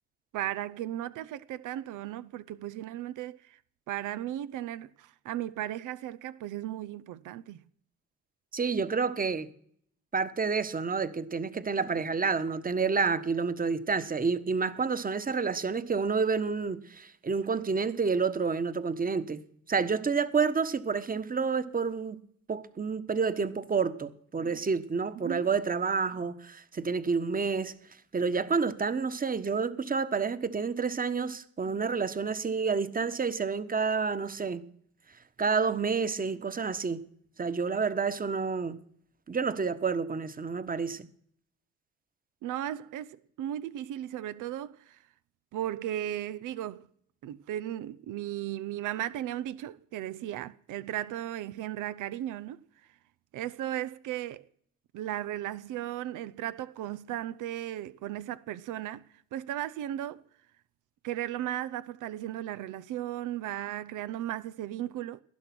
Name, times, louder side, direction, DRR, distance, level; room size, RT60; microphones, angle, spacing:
voice 1, 0.3-3.6 3.9-7.6 25.2-25.4 42.4-45.0 45.5-46.9 47.2-52.6 53.3-54.4 54.9-59.0 59.3-60.2 61.0-65.2, right 12 dB, 85° right, 0.8 m, -36 dB
voice 2, 8.5-9.5 10.1-19.4 19.7-22.2 22.5-27.7 28.1-34.7 35.4-37.0 37.4-38.8 39.3-41.1, right 5 dB, 30° right, 1.3 m, -29 dB
19.0 x 11.5 x 6.1 m
cardioid pair, 90°, 30 cm